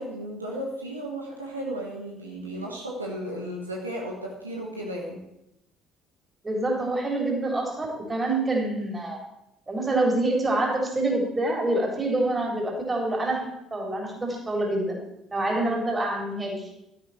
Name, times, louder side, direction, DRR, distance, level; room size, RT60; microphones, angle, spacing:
voice 1, 0.0-5.2 15.5-15.7, right 1 dB, 90° right, -2 dB, 1.6 m, -34 dB
voice 2, 6.4-9.2 9.7-15.0 15.3-16.7, right 2 dB, 25° right, 0 dB, 4.0 m, -26 dB
12.5 x 10.0 x 4.4 m, 0.86 s
figure-of-eight pair, 50°, 0 cm